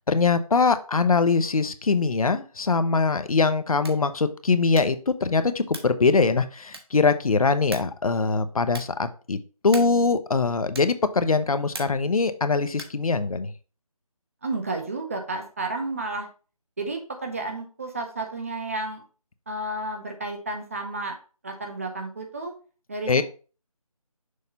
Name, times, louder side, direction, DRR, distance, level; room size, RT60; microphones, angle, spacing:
voice 1, 0.1-9.4 9.6-13.5 23.1-23.2, left 4 dB, 70° left, 11 dB, 0.7 m, -22 dB
sound 1, 3.7-4.1 4.7-5.1 5.7-6.0 6.7-7.1 7.7-8.0 8.7-9.0 9.7-10.1 10.7-11.1 11.7-12.1 12.7-13.1, right 3 dB, 40° right, 1.1 m, -41 dB
voice 2, 14.4-16.3 16.8-19.0 19.5-21.2 21.4-22.5 22.9-23.1, right 2 dB, 25° right, 4 dB, 0.7 m, -31 dB
6.4 x 2.8 x 5.4 m, 0.37 s
figure-of-eight pair, 165°, 19 cm